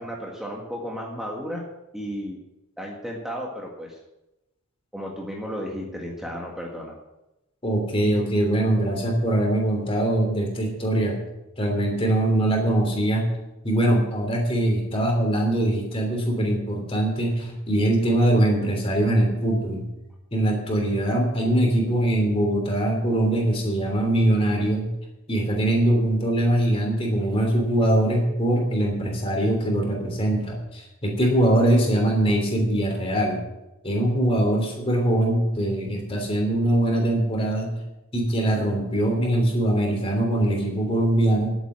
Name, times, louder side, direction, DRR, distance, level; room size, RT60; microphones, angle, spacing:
voice 1, 0.0-1.6 1.9-2.4 2.8-4.0 4.9-6.9, equal, ahead, -2 dB, 1.7 m, -33 dB
voice 2, 7.6-11.2 11.6-13.3 13.6-19.9 20.3-24.9 25.3-33.4 33.8-37.8 38.1-41.5, right 1 dB, 25° left, 1 dB, 3.2 m, -22 dB
11.0 x 9.0 x 7.5 m, 0.95 s
head